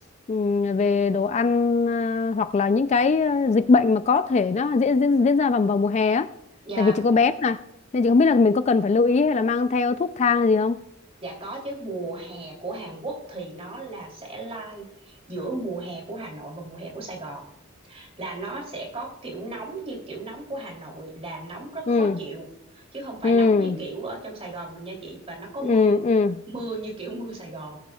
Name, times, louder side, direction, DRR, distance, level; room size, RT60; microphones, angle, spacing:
voice 1, 0.3-6.3 6.8-7.6 7.9-10.8 21.9-22.2 23.2-23.8 25.6-26.4, left 4 dB, 35° left, 0.3 m, -20 dB
voice 2, 6.6-7.0 11.2-17.5 17.8-22.5 22.7-26.0 26.5-27.8, right 2 dB, 30° right, 3.0 m, -35 dB
19.5 x 9.4 x 2.3 m
head